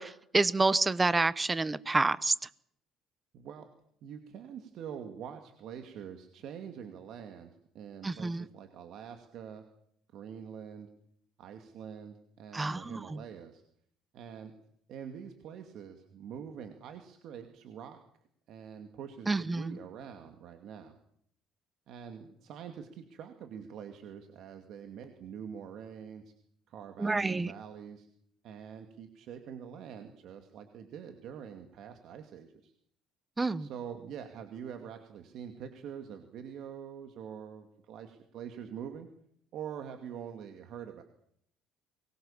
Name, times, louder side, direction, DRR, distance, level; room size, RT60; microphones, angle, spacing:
voice 1, 0.0-2.3 8.0-8.4 12.5-13.2 19.3-19.8 27.0-27.5 33.4-33.7, right 3 dB, 10° right, 17 dB, 0.8 m, -28 dB
voice 2, 3.3-3.7 4.0-9.6 10.1-10.9 11.4-13.6 14.1-14.5 14.9-18.0 18.5-21.0 21.9-26.3 26.7-28.1 28.4-32.7 33.6-39.1 39.5-41.0, right 8 dB, 55° right, 6 dB, 2.4 m, -45 dB
23.5 x 21.5 x 7.4 m, 0.68 s
cardioid pair, 165°, 0 cm